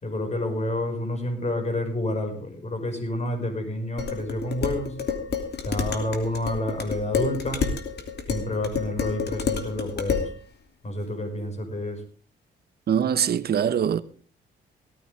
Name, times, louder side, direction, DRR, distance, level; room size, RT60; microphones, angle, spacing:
voice 1, 0.0-5.0 5.6-7.7 8.3-10.3 10.8-12.0, left 1 dB, 35° left, 5.8 m, -29 dB
Dishes pots and pans, 4.0-10.3, left 6 dB, 55° left, 2.9 m, -29 dB
voice 2, 12.9-14.0, right 8 dB, 55° right, 1.1 m, -23 dB
17.5 x 14.5 x 3.5 m
cardioid pair, 90°, 20 cm